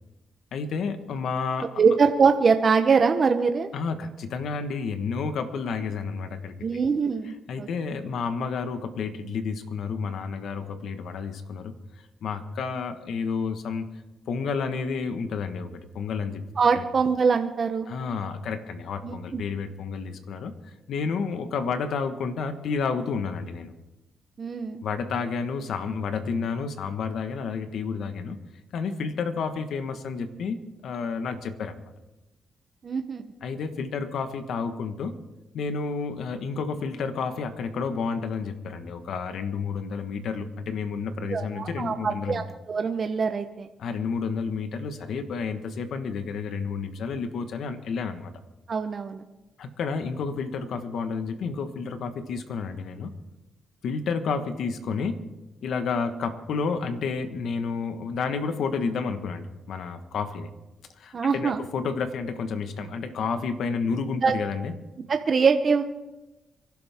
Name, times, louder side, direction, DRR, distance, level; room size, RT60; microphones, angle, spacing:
voice 1, 0.5-1.8 3.7-6.8 7.5-11.7 12.2-13.9 14.3-16.4 16.7-16.8 17.9-23.7 24.8-28.4 28.7-31.9 33.4-35.1 35.5-42.4 43.8-48.3 49.6-53.1 53.8-55.2 55.6-60.5 60.9-64.7, left 5 dB, 75° left, 9 dB, 1.3 m, -30 dB
voice 2, 1.6-3.7 6.6-7.7 16.6-17.9 19.0-19.4 24.4-24.8 32.8-33.2 41.3-43.7 48.7-49.2 61.1-61.6 64.2-64.3 65.1-65.8, right 5 dB, 45° right, 6 dB, 0.9 m, -23 dB
25.0 x 12.0 x 3.6 m, 1.0 s
cardioid pair, 85°, 0 cm